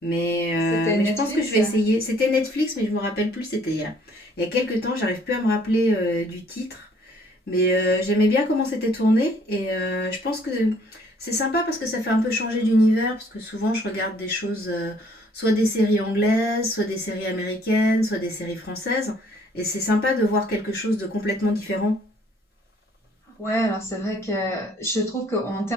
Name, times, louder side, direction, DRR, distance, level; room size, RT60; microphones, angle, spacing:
voice 1, 0.0-6.9 7.5-22.0, left 1 dB, 55° left, 1.5 m, -23 dB
voice 2, 0.7-1.7 23.4-25.7, equal, 15° left, 1.3 m, -26 dB
3.1 x 2.9 x 2.9 m
head